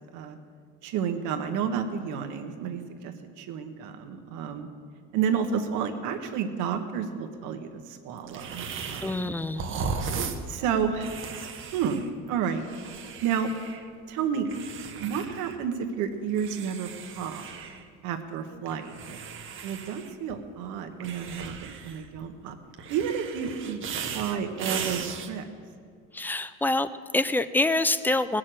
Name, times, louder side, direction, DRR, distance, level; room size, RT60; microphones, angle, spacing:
voice 1, 0.8-4.7 5.1-9.3 10.5-11.2 11.7-12.0 12.3-12.6 13.2-13.5 14.1-14.5 15.0-17.4 18.0-19.2 19.6-22.5 22.9-25.5, right 7 dB, 70° right, 6 dB, 1.4 m, -31 dB
sound 1, 8.3-9.3 9.5-13.9 14.5-15.6 15.9-17.8 18.7-20.4 21.0-22.2 22.7-25.3, right 5 dB, 40° right, 1.1 m, -37 dB
voice 2, 9.0-9.7 26.1-28.4, left 2 dB, 5° left, 14 dB, 0.3 m, -26 dB
18.5 x 6.5 x 7.7 m, 2.2 s
cardioid pair, 125°, 31 cm